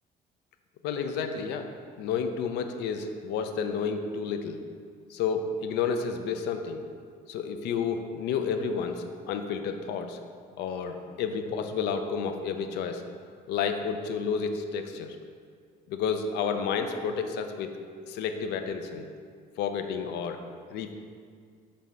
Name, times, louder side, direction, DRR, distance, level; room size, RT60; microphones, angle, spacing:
voice 1, 0.8-1.7 2.0-4.6 5.1-6.8 7.3-10.2 10.6-13.0 13.5-15.2 15.9-17.7 18.0-19.1 19.6-20.4 20.7-20.9, left 6 dB, 85° left, 6 dB, 0.6 m, -31 dB
7.5 x 3.5 x 5.4 m, 2.1 s
cardioid pair, 110°, 17 cm